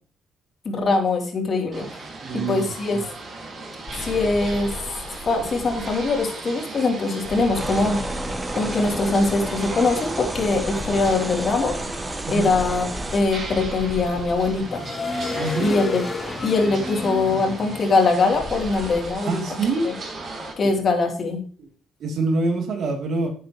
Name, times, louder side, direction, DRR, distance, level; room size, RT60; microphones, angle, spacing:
voice 1, 0.6-1.8 2.3-3.0 4.0-4.7 5.2-8.0 8.5-11.7 12.3-14.8 15.6-16.0 16.4-19.4 19.8-19.9 20.6-21.4, left 3 dB, 50° left, 1 dB, 3.3 m, -22 dB
sound 1, 1.7-20.5, right 3 dB, 50° right, 4.7 m, -37 dB
voice 2, 2.2-3.0 12.3-12.5 15.4-15.8 19.2-19.9 20.6-20.8 21.6-21.7 22.0-23.3, right 3 dB, 65° right, 1 dB, 3.1 m, -25 dB
sound 2, 3.9-6.2 7.2-9.8 10.3-19.1, left 2 dB, 30° left, 1.8 m, -34 dB
sound 3, 7.5-13.2, right 2 dB, 15° right, 1.0 m, -31 dB
11.0 x 8.1 x 3.1 m, 0.40 s
cardioid pair, 90°, 0 cm